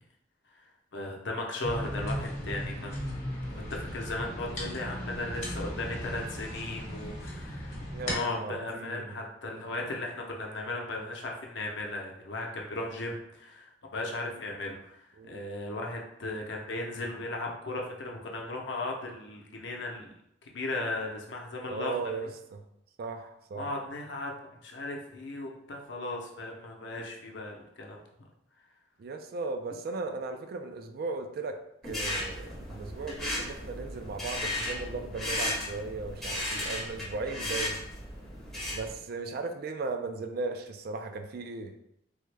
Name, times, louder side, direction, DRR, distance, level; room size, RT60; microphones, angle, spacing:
voice 1, 0.9-20.1 20.5-22.0 23.5-24.4 24.6-28.0, left 2 dB, 90° left, 0 dB, 0.6 m, -36 dB
sound 1, 1.6-8.2, equal, 40° left, 1.1 m, -36 dB
voice 2, 7.9-9.2 15.2-15.4 21.7-22.6 23.0-23.7 29.0-37.8 38.7-41.8, right 3 dB, 55° right, 7 dB, 0.3 m, -37 dB
sound 2, 31.8-38.9, left 1 dB, ahead, 1.0 m, -35 dB
3.4 x 2.1 x 3.3 m, 0.79 s
head